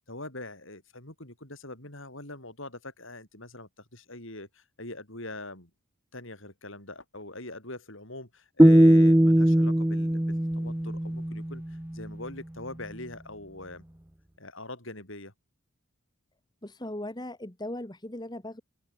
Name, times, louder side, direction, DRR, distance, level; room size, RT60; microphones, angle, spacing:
voice 1, 0.1-5.7 6.1-13.8 14.4-15.3, left 2 dB, 60° left, 7.2 m, -43 dB
sound 1, 8.6-11.7, right 1 dB, 10° right, 0.6 m, -20 dB
voice 2, 16.6-18.6, left 1 dB, 20° left, 1.6 m, -38 dB
open air
head